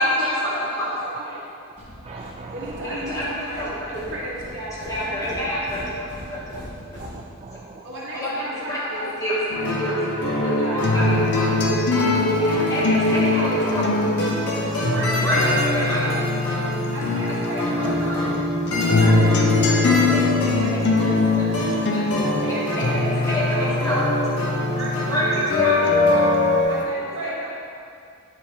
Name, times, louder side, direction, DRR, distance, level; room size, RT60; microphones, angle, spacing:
voice 1, 0.0-0.9 2.8-4.0 4.7-6.4 8.1-9.4 9.6-10.0 10.4-11.8 12.2-12.4 12.7-14.0 15.2-16.1 17.3-18.3 20.1-20.2 20.5-22.0 22.8-23.0 23.3-24.1 25.1-25.8 26.1-26.3 26.7-26.8, equal, 15° left, -8 dB, 1.5 m, -27 dB
voice 2, 0.9-1.3 2.5-5.3 7.8-9.0 10.4-10.9 12.4-13.7 14.9-16.1 16.9-18.0 19.0-20.0 20.4-20.7 21.0-21.1 22.4-23.8 24.7-24.9 25.2-25.6 26.7-27.5, right 1 dB, 55° right, -6 dB, 1.5 m, -34 dB
sound 1, 1.8-7.8, equal, 35° left, 1.7 m, -41 dB
voice 3, 2.0-3.1 6.9-7.8, right 3 dB, 25° right, 0 dB, 0.3 m, -39 dB
sound 2, 9.5-26.6, left 1 dB, 85° left, 1.3 m, -24 dB
sound 3, 10.8-17.5 17.8-25.5 25.9-26.8, left 3 dB, 50° left, 0.6 m, -24 dB
9.7 x 4.2 x 3.6 m, 2.4 s
head